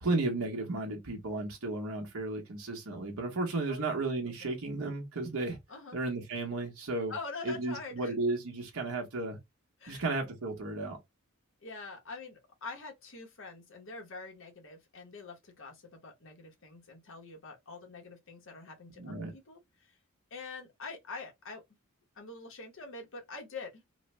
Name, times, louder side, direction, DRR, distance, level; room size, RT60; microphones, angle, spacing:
voice 1, 0.0-5.6 5.9-7.1 7.4-9.4 9.9-11.0 19.0-19.3, right 2 dB, 75° right, 0.9 m, -34 dB
voice 2, 7.1-8.1 9.8-10.0 11.6-20.0 20.3-21.6 22.1-23.8, left 4 dB, 60° left, 1.0 m, -45 dB
3.1 x 2.1 x 3.1 m
head